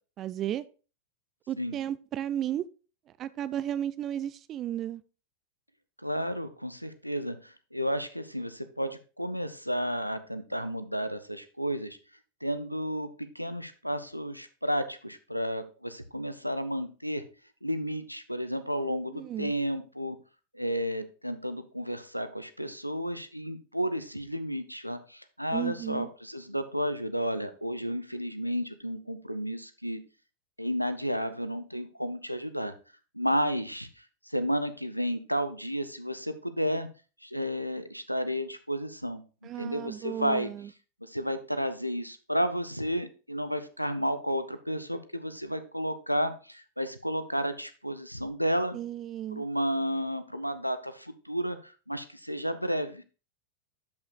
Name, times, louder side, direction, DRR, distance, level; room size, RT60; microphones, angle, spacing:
voice 1, 0.2-0.6 1.5-2.6 3.2-5.0 19.1-19.5 25.5-26.1 39.4-40.7 48.7-49.4, right 11 dB, 30° right, 0.3 m, -34 dB
voice 2, 6.0-12.0 12.4-17.2 17.6-20.2 20.5-30.0 30.6-32.7 33.1-36.9 37.2-40.5 41.0-48.8 49.3-53.0, equal, 90° right, 0.6 m, -32 dB
11.5 x 5.6 x 2.3 m
figure-of-eight pair, 90°, 0 cm